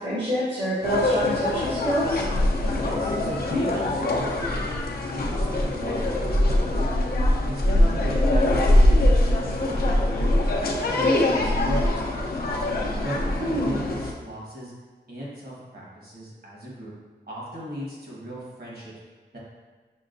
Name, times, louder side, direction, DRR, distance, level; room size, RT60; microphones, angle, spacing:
voice 1, 0.0-2.2 13.4-13.8, equal, 75° right, -12 dB, 1.4 m, -26 dB
sound 1, 0.8-14.1, left 1 dB, 55° left, 0.6 m, -23 dB
voice 2, 2.7-4.7 5.1-7.0 7.4-10.6 10.9-11.9 13.0-14.7 15.1-16.9 17.3-18.9 19.3-19.4, equal, 55° right, -6 dB, 1.4 m, -36 dB
6.1 x 2.2 x 2.6 m, 1.4 s
wide cardioid pair, 75°, 19 cm